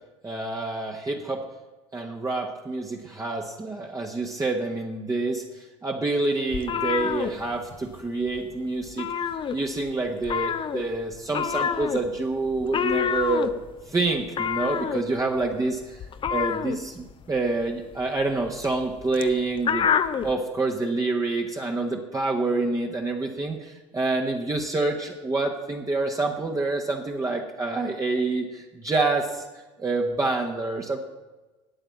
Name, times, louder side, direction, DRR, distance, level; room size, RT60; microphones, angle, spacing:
voice 1, 0.2-1.4 1.9-9.1 9.5-13.5 13.8-19.9 20.2-29.5 29.8-31.0, right 3 dB, 20° right, 0 dB, 1.3 m, -27 dB
sound 1, 6.5-8.0 8.3-8.5 8.8-9.9 10.2-20.3, left 7 dB, 35° left, 0.7 m, -28 dB
8.9 x 8.9 x 7.3 m, 1.2 s
hypercardioid pair, 65°, 15 cm